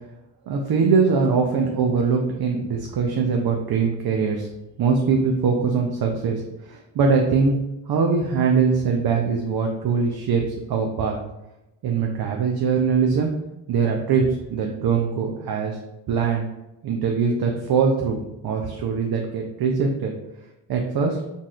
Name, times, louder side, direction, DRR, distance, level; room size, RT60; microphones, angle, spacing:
voice 1, 0.5-4.5 4.8-7.6 7.9-11.2 11.8-13.3 13.7-15.8 16.1-16.4 16.8-20.1 20.7-21.2, right 5 dB, 50° right, 1 dB, 0.5 m, -22 dB
3.9 x 2.5 x 2.3 m, 0.97 s
supercardioid pair, 55°, 48 cm